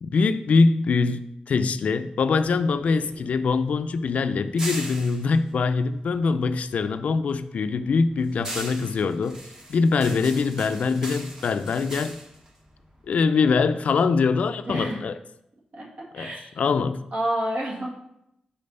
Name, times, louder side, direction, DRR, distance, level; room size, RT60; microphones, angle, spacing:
voice 1, 0.0-9.4 9.7-12.2 13.1-15.1 16.1-16.3 16.6-17.1, left 4 dB, 60° left, 0.3 m, -23 dB
sound 1, 2.2-6.7 7.1-13.5, right 1 dB, 25° right, 1.0 m, -40 dB
voice 2, 14.7-15.0 15.7-15.8 16.1-16.5 17.1-17.9, right 1 dB, 60° right, 1.6 m, -28 dB
5.4 x 4.3 x 5.2 m
wide cardioid pair, 150°, 3 cm